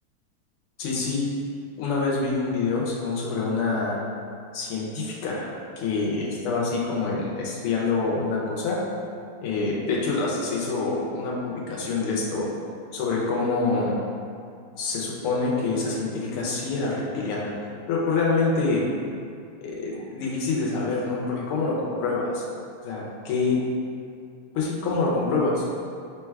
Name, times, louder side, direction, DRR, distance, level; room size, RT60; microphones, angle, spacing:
voice 1, 0.8-1.3 1.8-4.0 4.5-5.5 5.8-9.0 9.4-12.6 12.9-14.0 14.7-17.5 17.9-18.8 19.6-22.4 22.8-23.6 24.5-25.6, left 3 dB, 85° left, -3 dB, 1.6 m, -26 dB
3.8 x 2.2 x 4.5 m, 2.4 s
omnidirectional pair, 2.4 m